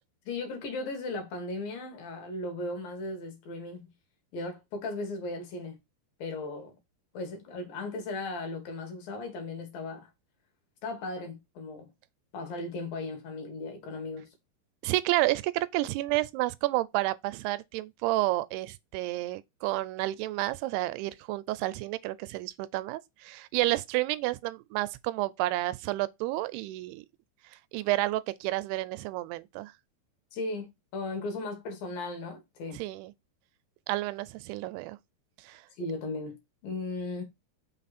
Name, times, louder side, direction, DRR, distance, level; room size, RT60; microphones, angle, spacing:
voice 1, 0.3-3.8 4.3-5.8 6.2-6.7 7.1-10.1 10.8-11.9 12.3-14.3 30.3-32.8 35.8-36.4 36.6-37.2, left 2 dB, 65° left, 3.2 m, -36 dB
voice 2, 14.8-27.1 27.7-29.7 32.7-33.1 33.9-35.0 35.4-35.6, right 18 dB, 85° right, 2.6 m, -30 dB
5.9 x 4.2 x 4.1 m
omnidirectional pair, 4.6 m